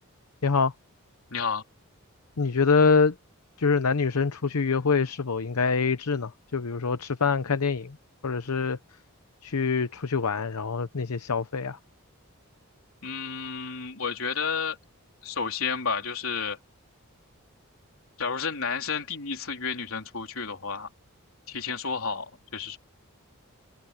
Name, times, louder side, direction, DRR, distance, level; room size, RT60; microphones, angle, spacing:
voice 1, 0.4-0.7 2.4-3.1 3.6-8.0 8.2-8.8 9.4-11.8, left 5 dB, 85° left, 0.8 m, -25 dB
voice 2, 1.3-1.6 13.0-14.8 15.2-16.6 18.2-20.9 21.5-22.8, left 5 dB, 70° left, 3.9 m, -31 dB
open air
head